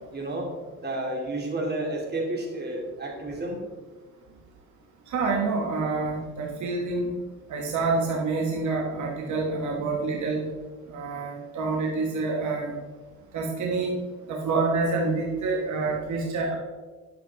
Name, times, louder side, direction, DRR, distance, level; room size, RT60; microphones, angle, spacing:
voice 1, 0.1-0.5 0.8-3.6, right 1 dB, 35° right, -1 dB, 2.5 m, -31 dB
voice 2, 5.1-7.1 7.5-10.4 10.9-12.7 13.3-13.9 14.3-16.6, right 3 dB, 70° right, 0 dB, 1.5 m, -27 dB
11.0 x 7.0 x 3.5 m, 1.4 s
cardioid pair, 90°, 30 cm